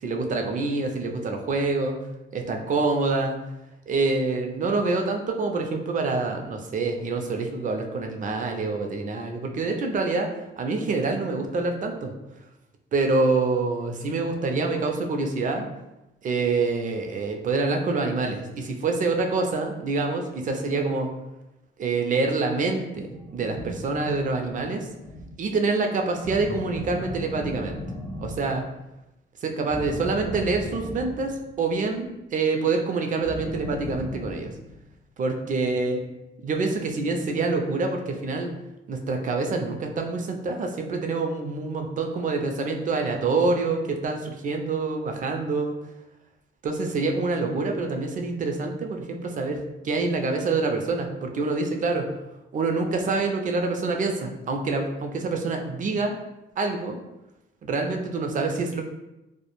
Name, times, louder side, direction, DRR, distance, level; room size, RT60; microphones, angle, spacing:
voice 1, 0.0-2.0 2.3-3.4 3.9-10.3 10.6-12.1 12.9-15.7 16.2-21.1 21.8-24.9 25.4-27.8 28.2-28.6 29.4-34.5 35.2-36.0 36.4-38.5 38.9-45.7 46.6-52.1 52.5-56.1 56.6-57.0 57.6-58.8, right 3 dB, 40° right, 3 dB, 0.4 m, -26 dB
sound 1, 23.1-25.5 26.2-28.8 29.7-31.7 33.2-34.9, equal, 20° left, 0.5 m, -36 dB
2.1 x 2.1 x 2.9 m, 0.96 s
cardioid pair, 90°, 20 cm